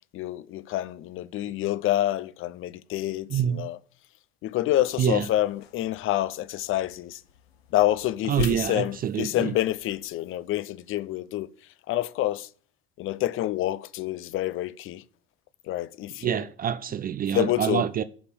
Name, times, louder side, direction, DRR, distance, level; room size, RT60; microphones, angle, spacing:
voice 1, 0.1-3.8 4.4-7.2 7.7-11.5 11.9-12.5 13.0-15.0 15.6-16.5 17.3-17.8, left 14 dB, 40° left, 0.6 m, -27 dB
voice 2, 3.3-3.7 5.0-5.3 8.3-9.5 16.2-18.0, right 9 dB, 30° right, 0.5 m, -26 dB
sound 1, 4.8-10.2, left 6 dB, 75° left, 0.7 m, -42 dB
7.1 x 5.3 x 6.7 m
hypercardioid pair, 65°, 31 cm